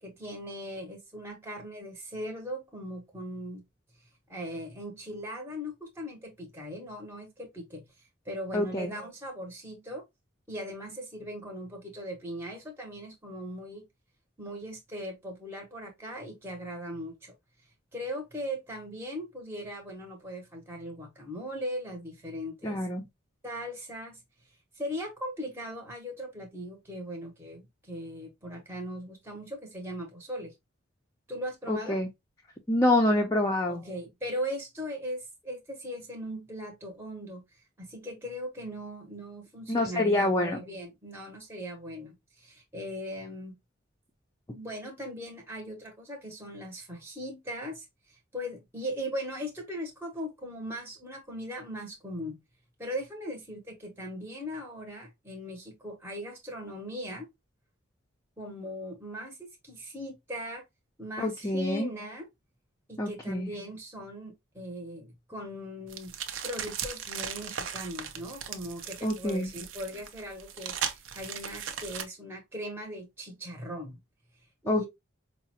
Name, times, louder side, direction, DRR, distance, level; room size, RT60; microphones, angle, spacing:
voice 1, 0.0-3.6 4.3-10.0 10.5-13.9 14.4-17.3 17.9-22.9 23.4-24.2 24.7-30.5 31.3-32.0 33.7-37.4 37.8-43.6 44.5-52.4 52.8-57.3 58.4-60.6 61.0-62.3 62.9-66.1 66.4-74.0 74.6-74.9, equal, 10° right, 0.8 m, -39 dB
voice 2, 8.5-8.9 22.6-23.0 31.7-32.1 32.7-33.8 39.7-40.6 61.2-61.9 63.0-63.5 69.0-69.5 74.7-74.9, left 1 dB, 15° left, 0.5 m, -26 dB
sound 1, 65.9-72.0, right 8 dB, 75° right, 0.6 m, -37 dB
4.7 x 2.1 x 2.8 m
head